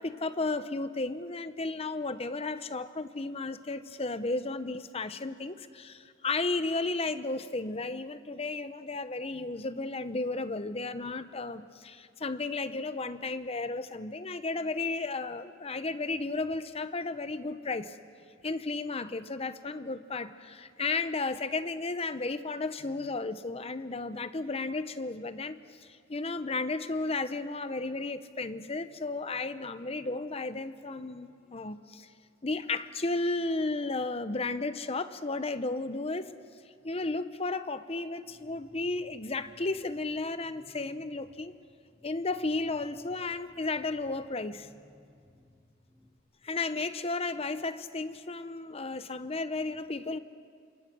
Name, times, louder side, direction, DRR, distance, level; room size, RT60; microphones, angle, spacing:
voice 1, 0.0-18.0 18.4-32.1 32.4-36.3 36.8-41.5 42.0-44.7 46.4-50.2, left 3 dB, 30° left, 12 dB, 0.8 m, -33 dB
sound 1, 38.2-46.2, left 1 dB, 5° right, 1.5 m, -61 dB
27.5 x 24.0 x 6.2 m, 2.2 s
head